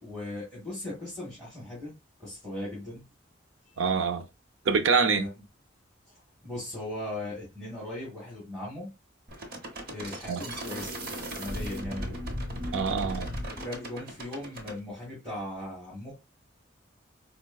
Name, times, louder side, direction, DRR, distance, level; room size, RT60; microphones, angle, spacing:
voice 1, 0.0-3.1 5.0-5.3 6.4-8.9 9.9-10.9 11.4-12.2 13.4-16.1, left 1 dB, ahead, 2.0 m, -38 dB
voice 2, 3.8-4.2 4.7-5.2 10.3-10.4 12.7-13.3, right 5 dB, 90° right, 0.5 m, -25 dB
sound 1, 9.3-14.8, equal, 50° right, 0.9 m, -36 dB
4.5 x 2.2 x 2.2 m
head